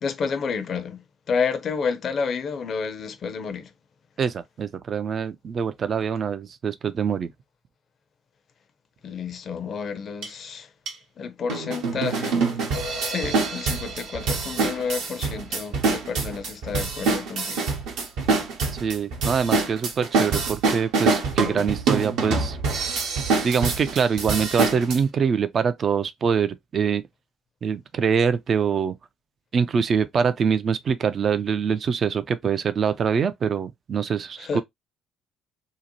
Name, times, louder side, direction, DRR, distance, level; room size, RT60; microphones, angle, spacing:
voice 1, 0.0-3.7 9.0-10.7 11.2-12.5 13.1-17.6 34.4-34.6, left 5 dB, 45° left, 0.5 m, -30 dB
voice 2, 4.2-7.3 18.8-22.6 23.4-27.0 27.6-28.9 29.5-34.6, right 6 dB, 45° right, 0.3 m, -24 dB
sound 1, 10.2-10.3 10.9-11.0 11.5-25.0, right 4 dB, 65° right, 0.7 m, -25 dB
2.7 x 2.1 x 2.7 m
figure-of-eight pair, 50°, 0 cm